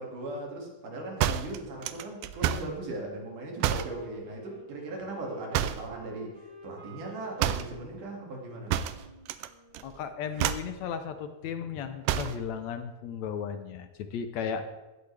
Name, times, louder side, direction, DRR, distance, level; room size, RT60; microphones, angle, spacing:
voice 1, 0.0-8.8, right 2 dB, 70° right, 0 dB, 3.8 m, -38 dB
sound 1, 1.2-2.8 3.6-4.0 5.5-6.0 7.4-7.8 8.7-9.5 9.7-10.0 10.4-10.8 12.1-12.4, right 11 dB, 90° right, 2.3 m, -29 dB
Wind instrument woodwind instrument, 3.8-10.4, right 1 dB, 35° right, 0.9 m, -52 dB
voice 2, 9.8-14.6, left 7 dB, 70° left, 8 dB, 1.8 m, -35 dB
16.0 x 12.0 x 3.4 m, 1.1 s
omnidirectional pair, 3.8 m